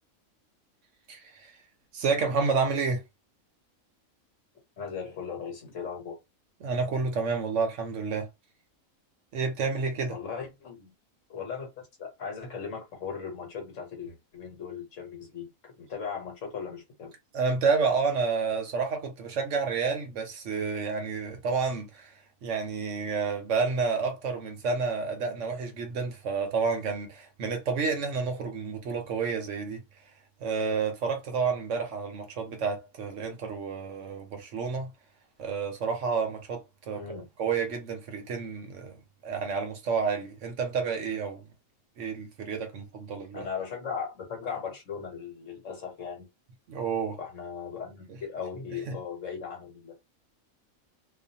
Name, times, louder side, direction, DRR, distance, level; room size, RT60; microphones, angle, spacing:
voice 1, 1.1-1.5 1.9-3.0 6.6-8.3 9.3-10.2 17.3-22.1 22.4-29.8 30.4-34.9 35.4-39.0 39.2-41.4 42.0-43.5 46.7-47.2 48.7-49.0, right 5 dB, 65° right, 1.0 m, -30 dB
voice 2, 4.8-6.2 10.1-10.9 11.3-11.7 12.0-17.1 36.9-37.3 43.3-46.3 47.2-49.9, left 6 dB, 65° left, 1.3 m, -38 dB
2.5 x 2.5 x 2.7 m
omnidirectional pair, 1.4 m